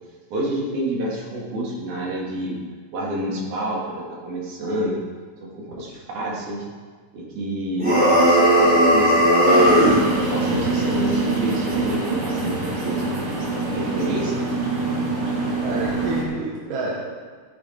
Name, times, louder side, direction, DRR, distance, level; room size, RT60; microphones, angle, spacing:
voice 1, 0.3-2.6 2.9-5.0 5.4-6.7 7.1-9.7 10.1-13.1 13.6-14.4, right 1 dB, 70° right, -4 dB, 3.9 m, -28 dB
sound 1, 7.8-10.0, equal, 5° right, 4.0 m, -16 dB
sound 2, 9.5-16.2, right 3 dB, 45° right, 2.8 m, -24 dB
voice 2, 15.6-17.2, right 3 dB, 85° right, -4 dB, 3.2 m, -29 dB
13.5 x 10.5 x 4.6 m, 1.5 s
omnidirectional pair, 3.7 m